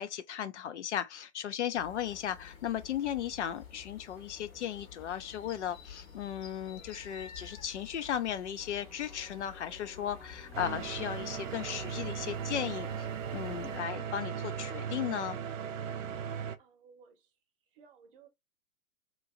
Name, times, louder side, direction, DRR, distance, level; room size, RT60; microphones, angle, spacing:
voice 1, 0.0-15.4, left 10 dB, 55° left, 0.5 m, -36 dB
sound 1, 1.7-13.8, left 7 dB, 70° left, 1.3 m, -51 dB
sound 2, 8.6-13.7, right 1 dB, 5° right, 0.4 m, -54 dB
sound 3, 10.5-16.6, right 8 dB, 65° right, 0.5 m, -37 dB
voice 2, 16.6-17.3 17.7-18.3, right 6 dB, 40° right, 0.8 m, -59 dB
2.9 x 2.6 x 2.4 m
figure-of-eight pair, 110°, 42 cm